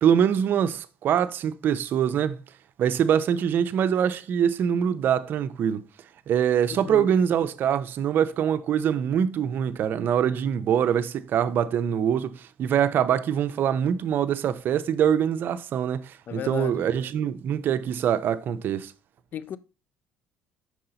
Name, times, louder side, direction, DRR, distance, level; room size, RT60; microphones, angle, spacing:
voice 1, 0.0-2.4 2.8-5.8 6.3-18.9, right 8 dB, 55° right, 0.5 m, -24 dB
voice 2, 6.7-7.2 16.3-16.8 19.3-19.6, left 10 dB, 50° left, 0.5 m, -34 dB
5.5 x 4.8 x 3.9 m
supercardioid pair, 85°, 4 cm